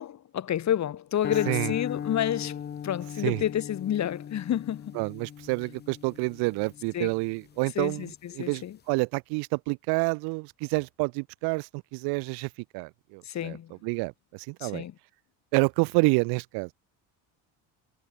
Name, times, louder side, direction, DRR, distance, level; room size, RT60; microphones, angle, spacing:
voice 1, 0.0-5.0 6.9-7.1 7.7-8.8 13.2-13.7 14.6-14.9, left 10 dB, 45° left, 3.1 m, -30 dB
sound 1, 1.2-7.6, left 8 dB, 25° left, 0.7 m, -38 dB
voice 2, 4.9-13.6 13.8-14.8 15.5-16.7, right 30 dB, 75° right, 0.8 m, -28 dB
cardioid pair, 115°, 39 cm